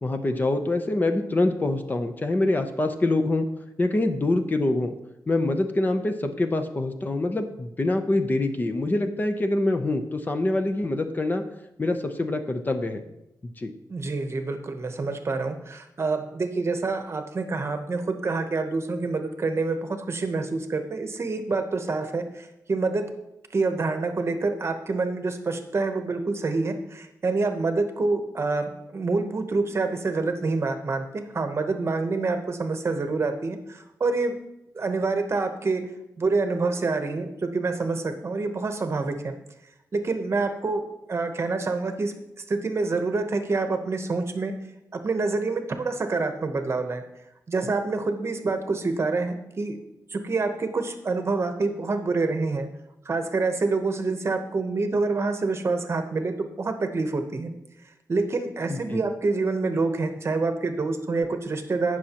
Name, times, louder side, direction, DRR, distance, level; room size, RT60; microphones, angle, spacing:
voice 1, 0.0-3.5 3.8-4.9 5.3-11.4 11.8-13.0 13.4-13.7 58.7-59.0, left 2 dB, 25° left, 7 dB, 0.7 m, -25 dB
voice 2, 13.9-23.1 23.5-34.4 34.7-35.9 36.2-39.4 39.9-40.8 41.1-44.5 44.9-47.0 47.5-49.8 50.1-52.7 53.0-57.5 58.1-62.0, right 3 dB, 40° right, 7 dB, 0.9 m, -27 dB
18.0 x 6.3 x 2.9 m, 0.88 s
wide cardioid pair, 135°, 7 cm